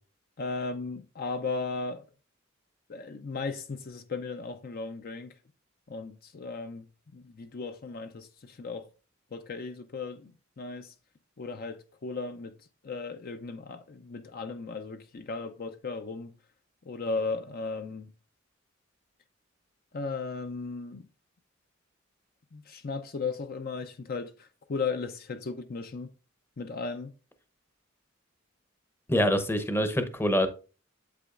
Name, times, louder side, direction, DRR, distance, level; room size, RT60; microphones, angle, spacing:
voice 1, 0.4-2.0 2.9-5.3 5.9-6.9 7.1-8.9 9.3-10.9 11.4-12.5 12.8-16.3 16.8-18.1 19.9-21.1 22.5-26.1 26.6-27.1, left 4 dB, 45° left, 0.5 m, -36 dB
voice 2, 29.1-30.5, equal, 10° left, 0.7 m, -25 dB
8.3 x 7.7 x 2.4 m
head